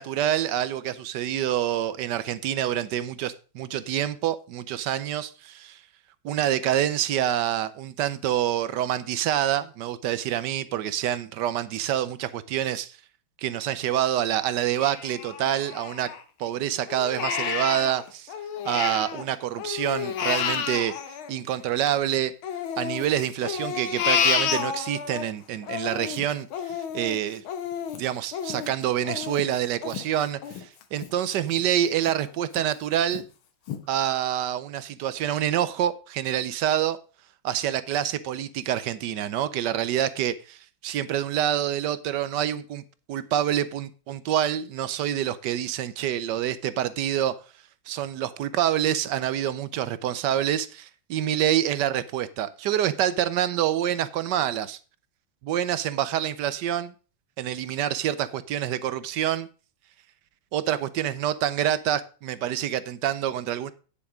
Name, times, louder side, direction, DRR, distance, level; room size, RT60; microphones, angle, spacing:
voice 1, 0.0-5.8 6.2-13.0 13.4-16.1 16.4-18.3 18.6-20.9 21.3-22.3 22.8-27.4 28.0-33.3 33.9-37.0 37.4-42.8 43.1-47.3 47.9-54.8 55.4-56.9 57.4-59.5 60.5-63.7, right 11 dB, 70° right, 1.1 m, -27 dB
Crying sobbing, 14.8-16.5 16.9-19.2 19.6-22.0 22.4-25.2 25.6-31.1 31.5-31.6 32.1-32.6 33.1-33.2 33.7-33.8, left 8 dB, 90° left, 1.9 m, -30 dB
9.7 x 7.1 x 5.0 m
omnidirectional pair, 2.2 m